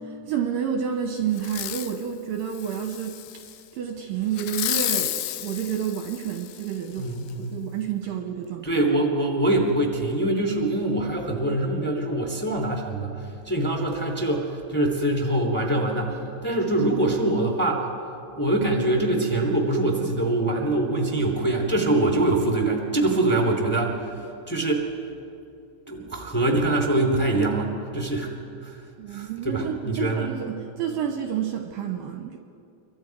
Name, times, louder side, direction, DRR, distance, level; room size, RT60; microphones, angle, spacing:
voice 1, 0.0-3.2 3.7-7.1 7.5-8.7 29.0-32.4, right 8 dB, 75° right, 4 dB, 2.2 m, -29 dB
Fireworks, 1.4-2.0 2.5-3.6 4.3-6.7 7.3-7.4, left 13 dB, 80° left, 2.9 m, -31 dB
voice 2, 7.0-7.6 8.6-17.9 18.3-24.1 24.5-24.9 25.9-28.3 28.6-28.8 29.1-30.3, right 2 dB, 5° left, 1 dB, 1.6 m, -24 dB
28.5 x 24.0 x 4.7 m, 2.6 s
omnidirectional pair, 5.1 m